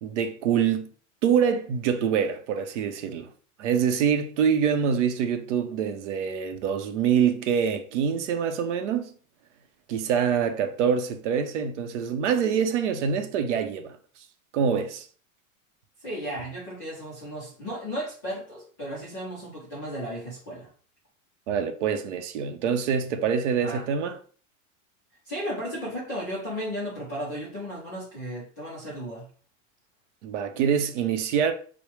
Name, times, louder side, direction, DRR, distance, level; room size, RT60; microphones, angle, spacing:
voice 1, 0.0-0.9 1.2-3.3 3.6-9.1 9.9-14.0 14.5-15.1 21.5-24.2 30.2-31.5, right 7 dB, 60° right, 0.6 m, -25 dB
voice 2, 16.0-20.7 23.6-23.8 25.3-29.3, equal, 15° left, 0.3 m, -34 dB
4.7 x 2.0 x 3.0 m
supercardioid pair, 175°, 42 cm